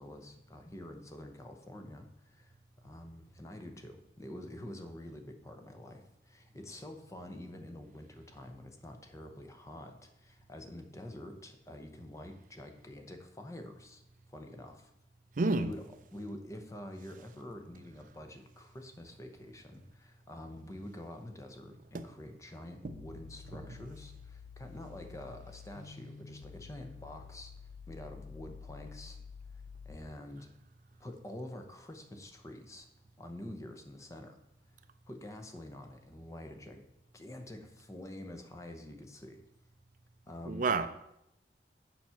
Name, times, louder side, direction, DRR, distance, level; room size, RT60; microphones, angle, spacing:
voice 1, 0.0-14.0 14.3-14.9 15.5-15.8 16.1-29.2 29.5-30.5 31.0-32.9 33.2-34.4 35.1-36.8 37.1-39.4 40.3-40.7, left 1 dB, 20° left, 5 dB, 0.8 m, -47 dB
voice 2, 15.4-15.7 21.9-22.0 22.8-22.9 40.5-40.9, right 3 dB, 45° right, 11 dB, 0.4 m, -29 dB
sound 1, 22.9-30.0, left 6 dB, 70° left, 0.4 m, -50 dB
7.3 x 5.8 x 5.7 m, 0.82 s
head